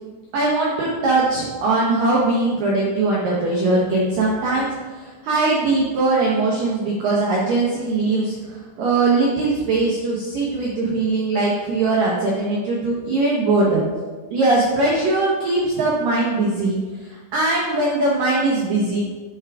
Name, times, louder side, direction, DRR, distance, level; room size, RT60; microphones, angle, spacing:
voice 1, 0.3-13.8 14.3-19.0, right 2 dB, 80° right, -4 dB, 1.9 m, -20 dB
9.3 x 4.8 x 3.5 m, 1.4 s
omnidirectional pair, 5.4 m